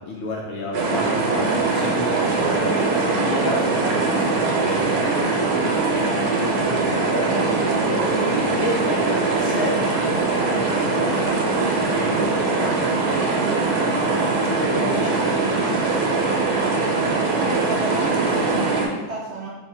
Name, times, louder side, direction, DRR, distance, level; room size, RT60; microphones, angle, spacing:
voice 1, 0.0-3.7 4.1-5.6 5.9-7.5 7.9-10.0 10.5-14.2 14.4-16.5 17.0-17.6, left 1 dB, 70° left, -2 dB, 0.8 m, -32 dB
sound 1, 0.7-18.9, right 3 dB, 85° right, 1.2 m, -21 dB
voice 2, 17.3-19.5, right 2 dB, 65° right, -5 dB, 0.7 m, -31 dB
3.4 x 2.1 x 4.2 m, 1.2 s
omnidirectional pair, 1.7 m